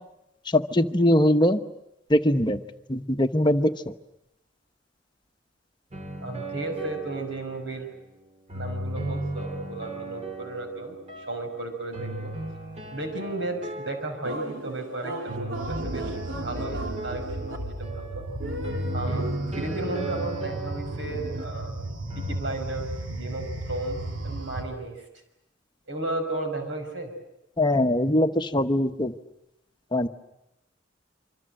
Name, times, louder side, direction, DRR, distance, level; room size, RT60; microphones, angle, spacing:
voice 1, 0.5-1.6 2.1-2.6 2.9-3.7 27.6-29.1 29.9-30.1, left 1 dB, 25° left, 8 dB, 1.0 m, -21 dB
sound 1, 5.9-7.9 8.5-11.4 11.9-14.6 15.3-21.6 22.1-22.4, right 1 dB, 35° right, 2.6 m, -37 dB
voice 2, 6.2-7.9 8.5-12.3 12.9-18.3 18.9-21.8 22.2-24.0 24.2-25.1 25.9-27.1, right 2 dB, 70° right, 5 dB, 5.4 m, -34 dB
sound 2, 14.2-24.6, right 2 dB, 90° right, 2.9 m, -34 dB
26.5 x 25.5 x 7.7 m, 0.87 s
head